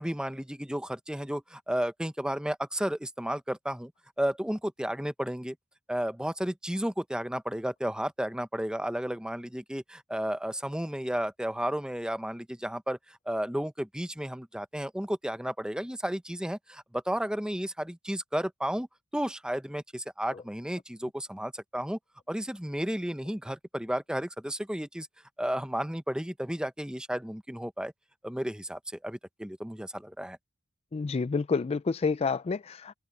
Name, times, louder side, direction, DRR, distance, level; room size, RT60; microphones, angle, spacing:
voice 1, 0.0-3.9 4.2-5.6 5.9-18.9 19.1-22.0 22.3-25.1 25.4-27.9 28.2-30.4, equal, 5° right, 0.8 m, -33 dB
voice 2, 30.9-32.9, left 4 dB, 30° left, 0.3 m, -29 dB
head